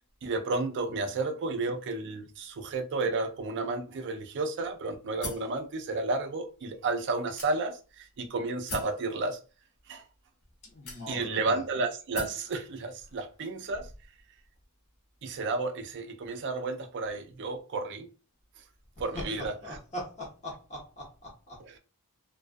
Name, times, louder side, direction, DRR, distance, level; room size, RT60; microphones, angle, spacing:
voice 1, 0.2-9.4 9.9-10.0 11.1-13.9 15.2-18.1 19.0-19.8 21.6-21.8, right 3 dB, 55° right, 0.4 m, -32 dB
sound 1, 5.2-5.6 6.3-6.4 7.4-7.9 8.7-9.0 10.0-10.1 10.9-11.4 12.1-12.5, left 2 dB, 75° left, 1.1 m, -40 dB
voice 2, 10.7-11.6 19.1-19.2 19.6-21.0 21.5-21.6, left 1 dB, 30° left, 0.8 m, -40 dB
2.3 x 2.2 x 2.5 m
head